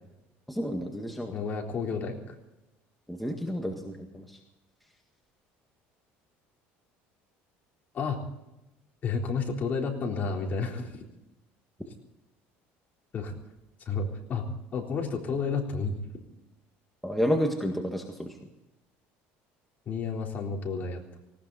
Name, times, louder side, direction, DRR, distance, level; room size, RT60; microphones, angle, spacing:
voice 1, 0.5-1.3 3.1-4.2 17.0-18.3, equal, ahead, 2 dB, 1.8 m, -30 dB
voice 2, 1.3-2.3 7.9-8.2 9.0-10.9 13.1-13.3 13.9-14.4 14.7-16.0 19.9-21.0, left 5 dB, 35° left, 1 dB, 3.8 m, -31 dB
19.0 x 18.5 x 4.1 m, 0.96 s
cardioid pair, 135°, 5 cm